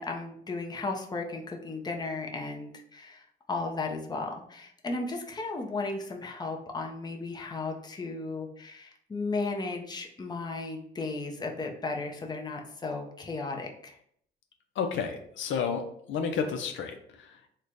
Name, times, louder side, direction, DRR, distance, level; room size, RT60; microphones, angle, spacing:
voice 1, 0.0-14.0, left 3 dB, 20° left, 2 dB, 0.6 m, -35 dB
voice 2, 14.8-15.8 16.1-17.6, left 6 dB, 70° left, 5 dB, 0.5 m, -31 dB
3.2 x 2.1 x 3.8 m, 0.67 s
cardioid pair, 90°, 20 cm